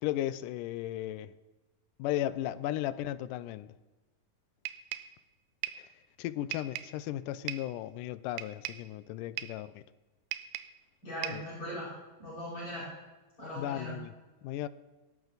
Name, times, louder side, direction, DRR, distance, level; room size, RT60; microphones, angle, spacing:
voice 1, 0.0-1.3 2.0-3.7 5.8-5.9 6.2-9.8 11.3-11.4 13.6-14.1 14.4-14.7, left 13 dB, 80° left, 2.1 m, -35 dB
sound 1, 4.7-5.2 5.6-5.9 6.5-7.0 7.5-7.8 8.4-8.9 9.4-9.7 10.3-10.8 11.2-11.5, right 14 dB, 90° right, 2.3 m, -39 dB
voice 2, 11.0-11.9 12.2-12.9 13.4-13.9, equal, 35° left, 6.2 m, -39 dB
17.5 x 13.5 x 4.0 m
omnidirectional pair, 3.8 m